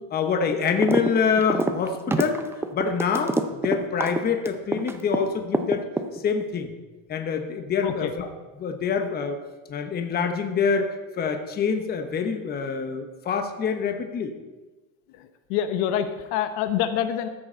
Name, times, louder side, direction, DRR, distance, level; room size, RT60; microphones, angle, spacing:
voice 1, 0.0-2.4 2.7-5.8 6.1-6.7 7.1-8.3 8.6-9.4 9.7-14.3, left 6 dB, 25° left, 6 dB, 0.9 m, -26 dB
sound 1, 0.8-1.1 1.4-5.2 5.5-6.4, right 2 dB, 5° right, 0.4 m, -25 dB
voice 2, 15.1-17.3, left 10 dB, 70° left, 10 dB, 1.0 m, -26 dB
13.5 x 7.8 x 4.4 m, 1.2 s
cardioid pair, 145°, 39 cm